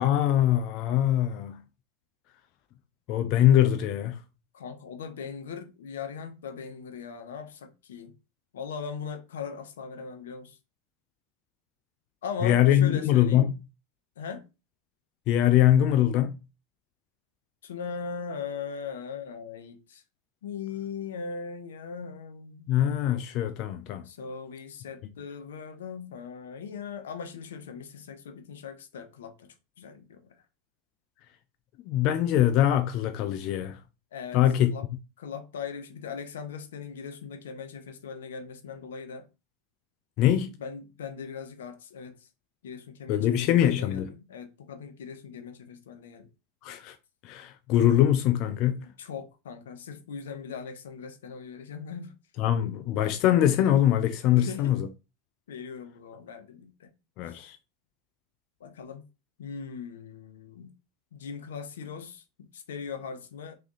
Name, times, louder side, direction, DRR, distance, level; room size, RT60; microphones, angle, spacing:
voice 1, 0.0-1.6 3.1-4.2 12.4-13.5 15.3-16.4 22.7-24.0 31.9-33.8 34.3-34.7 40.2-40.5 43.1-44.1 46.6-47.0 47.2-48.9 52.4-54.9 57.2-57.6, left 11 dB, 55° left, 0.5 m, -23 dB
voice 2, 4.5-8.1 8.5-10.6 12.2-13.5 14.2-14.5 17.6-20.0 20.4-22.7 24.0-30.4 34.1-34.4 34.7-34.9 35.2-39.3 40.4-42.3 42.6-46.3 49.0-52.1 54.3-54.8 55.5-56.9 57.3-57.4 58.6-59.0 59.4-60.7 61.1-63.6, left 6 dB, 90° left, 0.8 m, -39 dB
3.6 x 3.3 x 3.9 m
hypercardioid pair, 110°, 0 cm